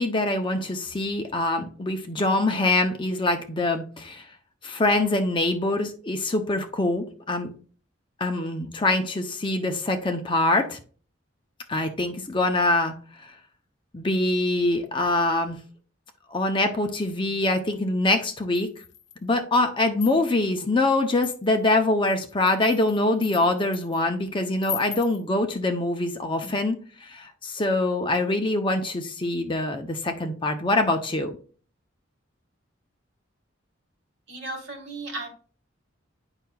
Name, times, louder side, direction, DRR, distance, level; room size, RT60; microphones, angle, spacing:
voice 1, 0.0-4.3 4.6-7.5 8.2-10.8 11.7-13.3 13.9-15.6 16.3-18.7 19.2-31.4, left 2 dB, 25° left, 0.6 m, -24 dB
sound 1, 18.5-19.3 19.8-20.5 21.1-21.7 22.3-24.0 24.6-25.2, left 10 dB, 65° left, 0.8 m, -38 dB
voice 2, 34.3-35.3, right 2 dB, 60° right, 2.0 m, -35 dB
8.9 x 5.6 x 2.3 m
head